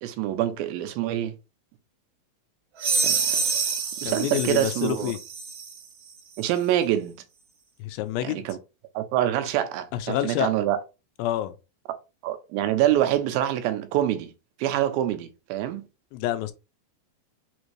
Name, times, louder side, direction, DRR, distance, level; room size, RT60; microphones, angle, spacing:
voice 1, 0.0-1.3 3.0-3.4 4.0-5.1 6.4-7.2 8.2-8.6 9.0-10.8 12.2-14.3 14.6-15.8, right 12 dB, 90° right, 2.4 m, -25 dB
sound 1, 2.8-5.8, right 5 dB, 70° right, 2.5 m, -27 dB
voice 2, 4.1-5.2 7.8-8.5 9.9-10.5 11.2-11.5 16.1-16.5, left 13 dB, 90° left, 2.4 m, -28 dB
5.8 x 2.6 x 3.1 m
omnidirectional pair, 4.1 m